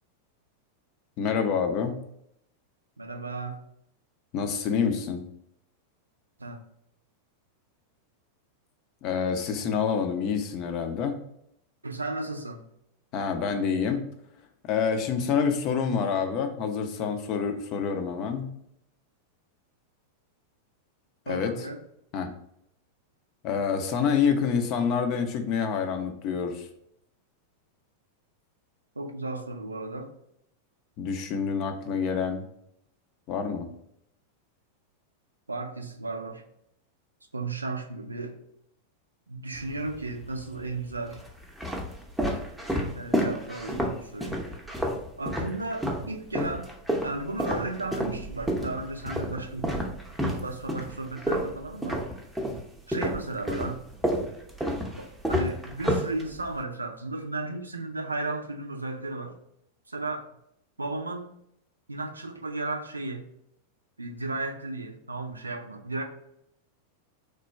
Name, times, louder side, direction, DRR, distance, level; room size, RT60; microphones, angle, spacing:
voice 1, 1.2-2.0 4.3-5.2 9.0-11.2 13.1-14.0 14.6-18.5 21.3-21.5 22.1-22.3 23.4-26.7 31.0-32.5 33.3-33.7, left 6 dB, 40° left, 0.5 m, -27 dB
voice 2, 3.0-3.6 6.4-6.6 11.8-12.6 21.3-21.8 29.0-30.1 35.5-36.4 37.3-38.4 39.3-41.2 42.9-44.4 45.2-46.7 47.0-49.8 50.4-52.0 52.9-53.9 55.0-59.4 59.9-60.3 60.8-61.3 61.9-63.2 64.0-66.0, right 2 dB, 85° right, 0.4 m, -34 dB
sound 1, 39.5-40.3 41.0-46.1 46.3-52.6 52.9-56.6, equal, 5° right, 0.6 m, -29 dB
3.2 x 2.2 x 4.2 m
figure-of-eight pair, 90°, 0 cm